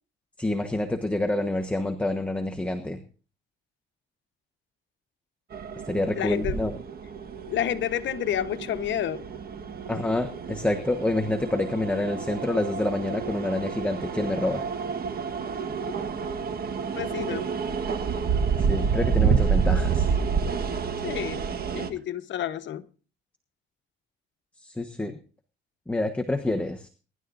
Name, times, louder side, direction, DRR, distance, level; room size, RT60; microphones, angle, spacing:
voice 1, 0.4-3.0 5.9-6.7 9.9-14.6 18.6-20.1 24.6-25.2 25.9-26.9, left 1 dB, 5° left, 1.2 m, -27 dB
sound 1, 5.5-21.9, right 6 dB, 50° right, 1.4 m, -29 dB
voice 2, 6.2-6.6 7.5-9.2 16.9-17.5 21.0-21.4 21.7-22.9, left 10 dB, 70° left, 1.1 m, -29 dB
23.0 x 11.5 x 2.6 m
cardioid pair, 90°, 20 cm